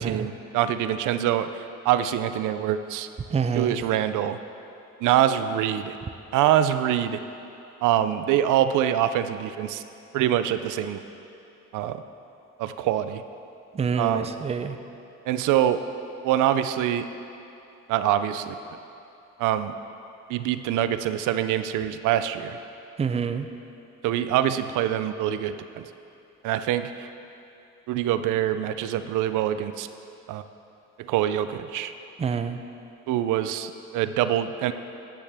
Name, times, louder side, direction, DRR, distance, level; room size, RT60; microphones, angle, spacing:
voice 1, 0.0-3.1 3.5-4.4 5.0-6.0 6.3-7.2 7.8-9.8 10.1-11.0 11.7-12.0 12.6-13.2 14.0-14.3 15.3-15.8 16.2-17.1 17.9-18.6 19.4-19.7 20.3-22.6 24.0-25.9 26.4-27.1 27.9-29.9 30.3-30.4 31.0-31.9 33.1-34.7, right 11 dB, 85° right, 11 dB, 0.5 m, -24 dB
voice 2, 3.3-3.7 13.8-14.8 23.0-23.5 32.2-32.6, right 6 dB, 20° right, 9 dB, 0.4 m, -26 dB
10.0 x 8.8 x 3.4 m, 2.8 s
cardioid pair, 90°, 30 cm